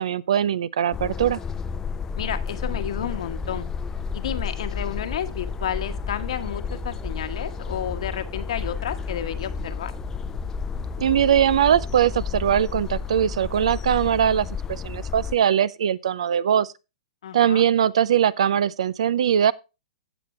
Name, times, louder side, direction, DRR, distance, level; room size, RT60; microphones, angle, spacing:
voice 1, 0.0-1.4 11.0-16.7 17.3-19.5, right 9 dB, 75° right, 0.5 m, -21 dB
sound 1, 0.9-15.4, left 6 dB, 15° left, 0.6 m, -32 dB
sound 2, 1.9-13.5, equal, 5° right, 1.3 m, -39 dB
voice 2, 2.2-3.7 4.1-9.9 17.2-17.6, left 9 dB, 70° left, 1.3 m, -31 dB
16.0 x 6.1 x 3.3 m
hypercardioid pair, 140°, 3 cm